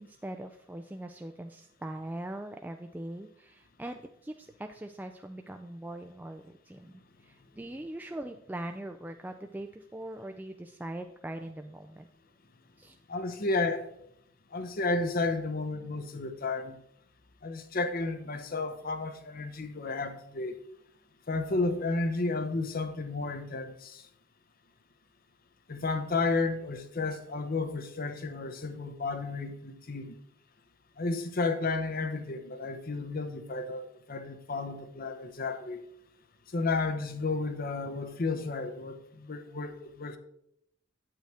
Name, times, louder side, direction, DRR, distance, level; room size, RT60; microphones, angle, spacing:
voice 1, 0.0-12.1 12.8-13.0, right 1 dB, 10° right, 0.3 m, -41 dB
voice 2, 13.1-13.9 14.5-16.8 17.4-20.6 21.3-24.1 25.7-30.2 31.0-35.8 36.5-40.2, left 3 dB, 45° left, 0.8 m, -32 dB
9.0 x 7.9 x 3.4 m
head